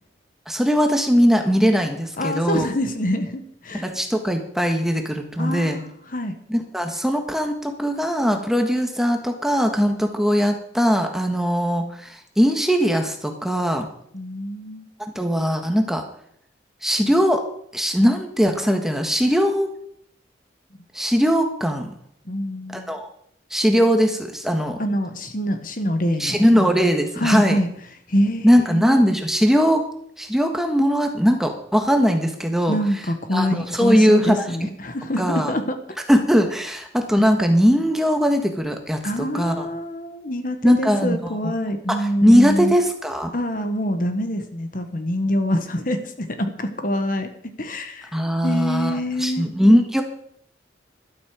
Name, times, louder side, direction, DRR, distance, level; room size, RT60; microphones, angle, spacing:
voice 1, 0.5-2.7 3.7-5.8 6.5-13.9 15.0-16.0 16.8-17.4 17.7-19.7 20.9-21.9 22.9-23.1 23.5-24.8 26.2-27.6 28.4-29.8 30.2-32.8 33.3-34.5 35.2-35.5 36.1-39.0 39.3-39.7 40.6-41.2 41.9-43.3 48.1-50.0, equal, ahead, 4 dB, 1.5 m, -20 dB
voice 2, 2.2-3.9 5.4-6.3 14.1-14.9 22.2-22.9 24.8-26.4 27.2-27.7 28.1-28.8 32.7-35.8 39.0-42.7 43.3-47.3 47.6-49.5, equal, 50° left, 8 dB, 1.4 m, -25 dB
12.5 x 12.0 x 5.0 m, 0.67 s
head